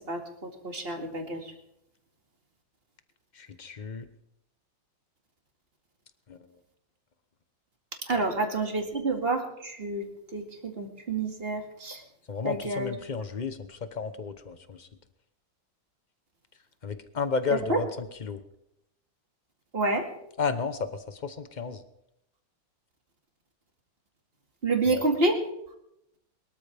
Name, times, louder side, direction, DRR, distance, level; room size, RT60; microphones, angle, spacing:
voice 1, 0.1-1.5 8.0-12.0 12.4-12.9 17.7-17.8 19.7-20.1 24.6-25.4, right 2 dB, 30° right, 4 dB, 2.3 m, -29 dB
voice 2, 3.3-4.1 6.3-6.5 8.1-8.2 12.3-14.9 16.8-18.4 20.4-21.8 24.9-25.1, left 5 dB, 35° left, 10 dB, 0.7 m, -33 dB
23.5 x 13.5 x 3.5 m, 0.79 s
omnidirectional pair, 2.1 m